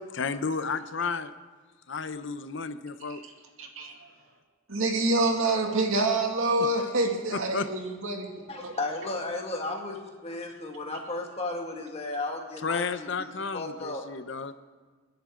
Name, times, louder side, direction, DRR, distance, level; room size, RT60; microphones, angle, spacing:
voice 1, 0.1-1.3 1.9-3.2 7.5-7.7 12.6-14.5, left 4 dB, 60° left, 11 dB, 0.7 m, -32 dB
voice 2, 3.6-3.9 4.7-8.3 8.6-8.7, right 2 dB, 80° right, 1 dB, 2.3 m, -27 dB
voice 3, 8.5-14.1, left 2 dB, 30° left, 1 dB, 2.0 m, -34 dB
30.0 x 10.5 x 3.8 m, 1.4 s
head